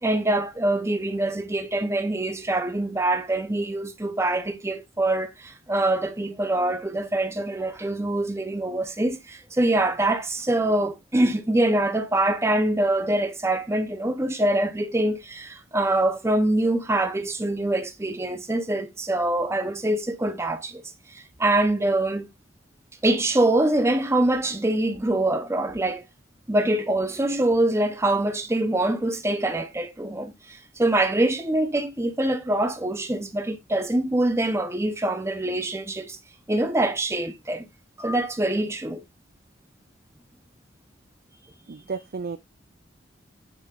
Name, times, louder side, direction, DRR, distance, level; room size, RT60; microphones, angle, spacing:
voice 1, 0.0-20.8 21.4-22.3 23.0-26.0 26.5-30.3 30.8-36.2 36.5-37.7 38.0-39.0, right 1 dB, 15° right, 0.8 m, -24 dB
voice 2, 41.7-42.4, right 5 dB, 50° right, 0.4 m, -32 dB
7.2 x 6.0 x 2.5 m
head